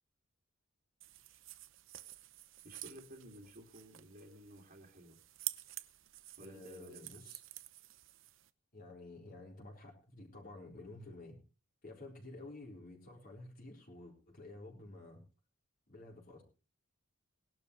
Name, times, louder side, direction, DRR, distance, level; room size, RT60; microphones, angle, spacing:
sound 1, 1.0-8.5, right 16 dB, 60° right, 0.7 m, -49 dB
voice 1, 2.6-5.2 6.4-7.0, equal, 45° right, -2 dB, 2.5 m, -54 dB
voice 2, 6.4-7.4 8.7-11.4 11.8-15.2 15.9-16.4, left 2 dB, 40° left, -1 dB, 4.0 m, -51 dB
19.5 x 12.0 x 3.2 m, 0.33 s
head